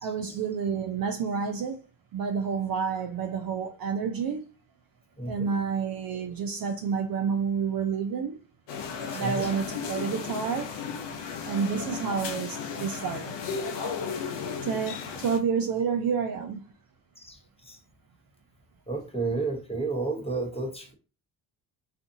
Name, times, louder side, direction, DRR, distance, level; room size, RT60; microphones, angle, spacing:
voice 1, 0.0-1.8 2.1-4.5 5.3-8.4 9.1-10.8 11.4-13.4 14.6-16.7, right 6 dB, 45° right, 0.5 m, -29 dB
voice 2, 5.2-5.5 9.1-9.5 17.3-17.8 18.9-20.9, right 3 dB, 10° left, 1.0 m, -32 dB
sound 1, 8.7-15.4, left 6 dB, 60° left, 0.7 m, -35 dB
2.5 x 2.4 x 2.5 m
hypercardioid pair, 50°, 50 cm